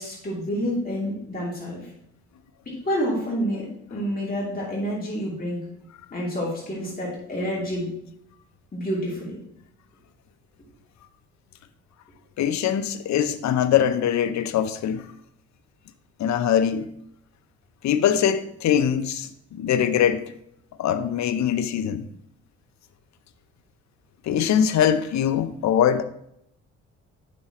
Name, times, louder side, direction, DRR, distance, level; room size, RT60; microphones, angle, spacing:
voice 1, 0.0-1.8 2.7-5.6 6.1-7.9 8.7-9.4, equal, 30° left, 2.7 m, -28 dB
voice 2, 12.4-15.1 16.2-16.9 17.8-20.2 20.8-22.1 24.2-26.0, left 9 dB, 65° left, 0.7 m, -22 dB
9.0 x 5.8 x 3.0 m
cardioid pair, 90°, 30 cm